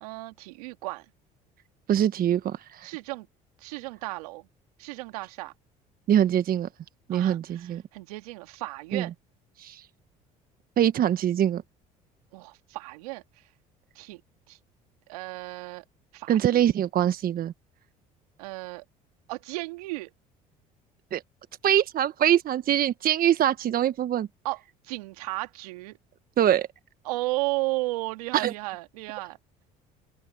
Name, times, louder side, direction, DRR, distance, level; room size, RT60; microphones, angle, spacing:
voice 1, 0.0-1.1 2.8-3.3 3.6-4.5 4.8-5.5 7.1-9.1 12.3-13.2 14.0-14.2 14.5-14.6 15.1-15.8 16.1-16.7 18.4-18.8 19.3-20.1 24.4-26.0 27.0-29.4, right 22 dB, 85° right, 2.1 m, -34 dB
voice 2, 1.9-2.9 6.1-6.7 7.1-7.8 8.9-9.1 9.6-9.9 10.8-11.6 16.3-17.5 21.1-21.2 21.6-24.3 26.4-26.7 28.3-28.5, right 10 dB, 50° right, 1.3 m, -23 dB
open air
hypercardioid pair, 65°, 19 cm